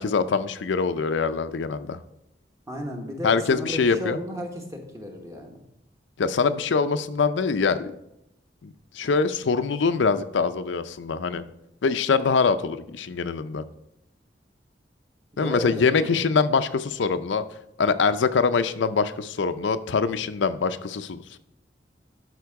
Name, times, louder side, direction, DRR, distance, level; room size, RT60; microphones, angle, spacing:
voice 1, 0.0-2.0 3.2-4.2 6.2-7.9 8.6-11.4 11.8-13.6 15.4-17.4 17.8-21.4, left 5 dB, 90° left, 11 dB, 0.5 m, -24 dB
voice 2, 2.7-5.6 15.3-16.1, left 1 dB, 15° right, 2 dB, 1.2 m, -34 dB
11.5 x 4.4 x 4.7 m, 0.84 s
head